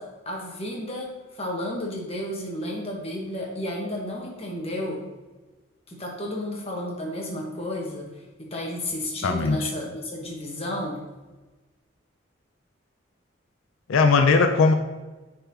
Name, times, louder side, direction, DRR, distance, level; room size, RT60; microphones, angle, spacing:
voice 1, 0.0-5.0 5.9-11.0, left 1 dB, 30° left, -1 dB, 1.2 m, -32 dB
voice 2, 9.2-9.7 13.9-14.7, left 4 dB, 80° left, 7 dB, 0.4 m, -19 dB
10.0 x 4.1 x 2.8 m, 1.2 s
head